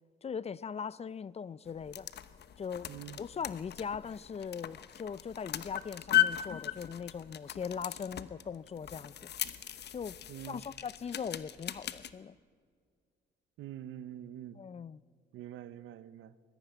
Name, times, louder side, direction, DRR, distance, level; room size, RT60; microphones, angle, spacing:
voice 1, 0.2-2.1 2.6-2.9 3.2-9.3 9.9-10.2 10.5-12.4 14.6-15.0, left 6 dB, 30° left, 0.4 m, -40 dB
sound 1, 1.7-12.1, left 12 dB, 60° left, 1.0 m, -37 dB
voice 2, 2.9-3.2 10.3-10.6 13.6-14.6 15.3-16.4, right 11 dB, 85° right, 0.8 m, -45 dB
21.0 x 14.5 x 9.1 m
cardioid pair, 90°, 20 cm